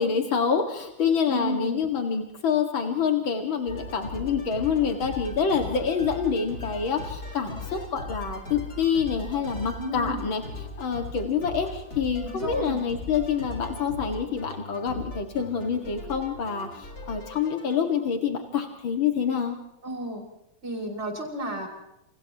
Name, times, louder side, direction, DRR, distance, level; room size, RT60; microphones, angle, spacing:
voice 1, 0.0-10.4 10.8-19.6, left 6 dB, 85° left, 3 dB, 2.8 m, -27 dB
voice 2, 1.3-1.8 9.8-10.2 12.2-12.8 19.8-20.2 20.6-21.7, equal, 35° right, 2 dB, 6.2 m, -32 dB
sound 1, 3.7-17.8, left 2 dB, 50° left, 5.4 m, -39 dB
29.5 x 29.0 x 3.0 m, 0.85 s
omnidirectional pair, 2.1 m